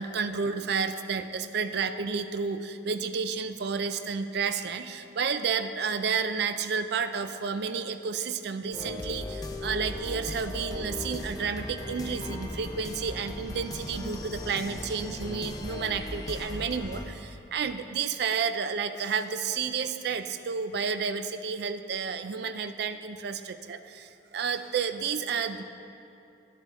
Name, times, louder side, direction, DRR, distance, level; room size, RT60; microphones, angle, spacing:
voice 1, 0.0-25.6, right 5 dB, 60° right, 10 dB, 0.4 m, -31 dB
sound 1, 8.7-17.0, left 1 dB, 20° left, 0.6 m, -37 dB
11.0 x 7.4 x 3.6 m, 2.7 s
head